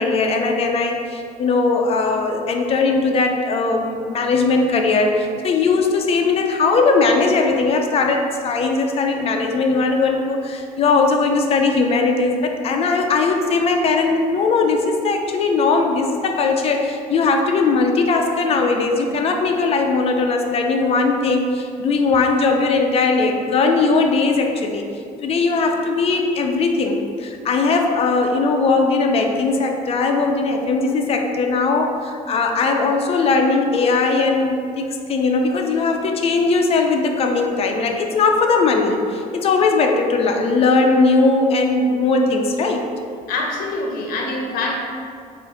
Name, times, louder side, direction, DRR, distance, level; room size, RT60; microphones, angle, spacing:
voice 1, 0.0-24.8 25.2-42.8, left 3 dB, 40° left, 3 dB, 0.4 m, -19 dB
voice 2, 43.3-44.8, left 2 dB, 75° left, 0 dB, 0.7 m, -24 dB
5.0 x 2.5 x 3.7 m, 2.4 s
cardioid pair, 130°, 15 cm